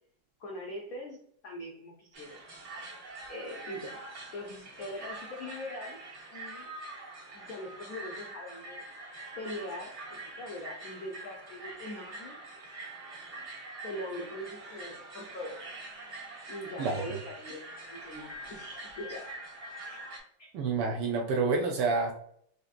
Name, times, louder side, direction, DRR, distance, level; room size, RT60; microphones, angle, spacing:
voice 1, 0.4-2.4 3.3-4.0 4.3-6.0 6.3-6.7 7.3-8.8 9.4-12.4 13.8-15.6 16.5-19.3 19.8-20.0 20.4-20.5, left 1 dB, 80° left, -1 dB, 0.7 m, -42 dB
sound 1, 2.1-20.2, right 2 dB, 55° right, 1.6 m, -44 dB
voice 2, 20.5-22.1, right 4 dB, 75° right, 1 dB, 1.0 m, -28 dB
4.9 x 2.7 x 2.4 m, 0.66 s
omnidirectional pair, 2.3 m